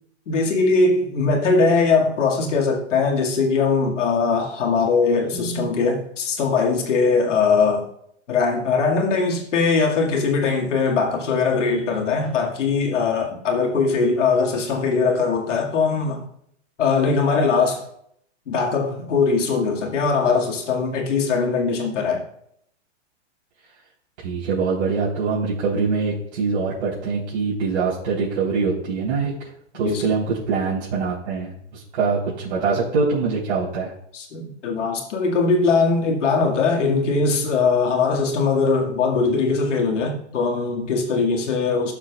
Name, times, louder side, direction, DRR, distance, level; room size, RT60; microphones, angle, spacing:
voice 1, 0.3-7.9 8.3-16.2 16.8-17.8 18.5-22.2 29.8-30.1 34.1-41.9, left 4 dB, 90° left, 2.2 m, -21 dB
voice 2, 5.3-5.7 24.2-29.3 29.7-31.5 31.9-33.9, right 4 dB, 75° right, 4.0 m, -23 dB
15.0 x 7.2 x 2.4 m
hypercardioid pair, 140°, 35 cm